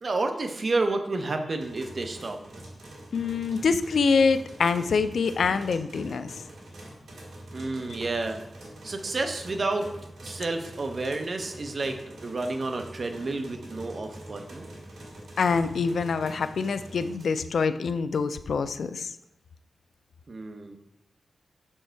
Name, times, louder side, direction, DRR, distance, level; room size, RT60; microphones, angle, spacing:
voice 1, 0.0-2.4 7.5-8.4 8.8-9.9 10.2-12.0 12.2-14.7 20.3-20.8, right 2 dB, 40° right, 5 dB, 0.7 m, -30 dB
sound 1, 1.6-17.4, right 1 dB, 75° right, 2.1 m, -45 dB
voice 2, 3.1-6.4 15.4-19.1, left 5 dB, 70° left, 11 dB, 0.3 m, -25 dB
6.1 x 4.5 x 4.5 m, 0.81 s
wide cardioid pair, 155°, 0 cm